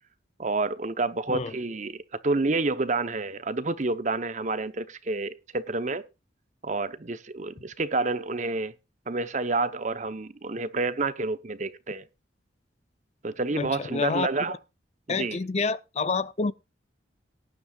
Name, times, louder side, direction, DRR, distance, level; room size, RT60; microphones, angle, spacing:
voice 1, 0.4-6.1 6.6-8.7 9.1-12.0 13.2-14.6 15.1-15.4, right 3 dB, 40° right, 0.8 m, -29 dB
voice 2, 13.6-14.6 15.1-16.5, left 4 dB, 35° left, 0.5 m, -28 dB
18.0 x 10.0 x 2.3 m
head